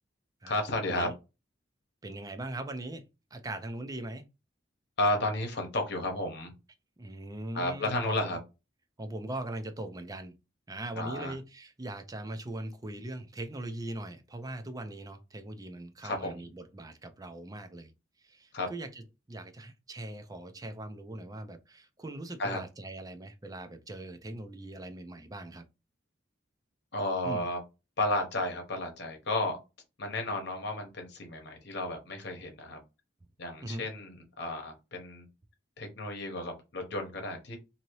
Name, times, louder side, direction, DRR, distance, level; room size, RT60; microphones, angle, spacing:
voice 1, 0.5-1.1 5.0-6.5 7.5-8.4 10.9-11.4 16.0-16.4 18.5-18.7 22.4-22.6 26.9-27.6 28.0-29.6 30.0-32.8 33.4-35.3 35.8-37.6, left 1 dB, 65° left, 1.0 m, -32 dB
voice 2, 2.0-3.0 3.3-4.2 7.0-8.4 9.0-10.4 10.7-17.9 18.2-25.6 27.2-27.5 33.6-33.8, right 1 dB, 20° right, 0.5 m, -40 dB
2.8 x 2.7 x 3.0 m
head